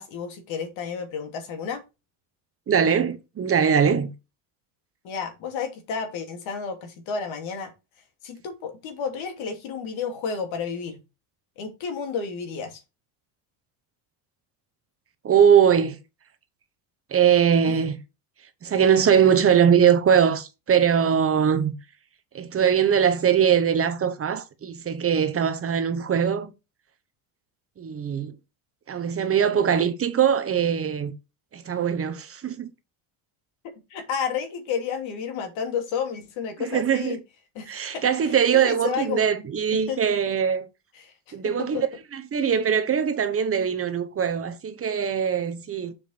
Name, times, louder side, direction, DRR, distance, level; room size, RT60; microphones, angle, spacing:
voice 1, 0.0-1.8 5.0-7.7 8.2-11.0 11.6-12.8 33.6-37.2 37.5-38.1 38.6-39.3 39.7-40.0 41.0-41.1 41.4-41.8, left 6 dB, 80° left, 2.7 m, -31 dB
voice 2, 2.7-4.1 15.2-16.0 17.1-18.0 18.6-21.8 22.3-26.5 27.8-28.3 28.9-31.1 31.5-32.7 36.6-37.2 37.7-40.7 41.3-41.9 42.1-45.9, right 8 dB, 30° right, 1.0 m, -21 dB
7.3 x 5.2 x 4.4 m
cardioid pair, 150°, 47 cm